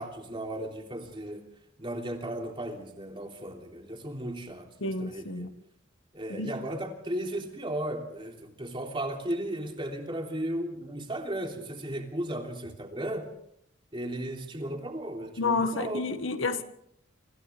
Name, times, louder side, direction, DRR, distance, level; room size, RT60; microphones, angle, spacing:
voice 1, 0.0-1.5 1.8-5.5 6.1-13.3 13.9-16.2, right 1 dB, 25° right, 3.1 m, -35 dB
voice 2, 4.8-5.5 6.3-6.5 15.4-16.6, left 3 dB, 80° left, 1.6 m, -30 dB
29.0 x 25.5 x 3.5 m
head